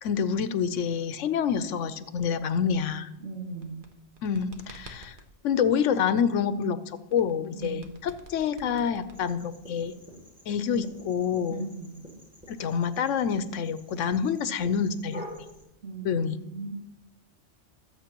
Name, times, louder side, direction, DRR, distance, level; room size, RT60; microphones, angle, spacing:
voice 1, 0.0-3.1 4.2-5.1 5.4-6.8 7.1-9.9 10.5-11.7 12.5-15.2 16.0-16.4, left 7 dB, 90° left, 13 dB, 1.0 m, -27 dB
voice 2, 3.2-3.9 7.5-7.9 11.5-12.0 15.8-16.7, right 3 dB, 75° right, 2 dB, 2.1 m, -38 dB
sound 1, 3.5-5.3 7.1-9.7, right 1 dB, 45° right, 1.3 m, -49 dB
sound 2, 9.1-15.6, equal, 5° right, 2.6 m, -48 dB
22.0 x 7.8 x 3.0 m, 0.88 s
omnidirectional pair, 1.3 m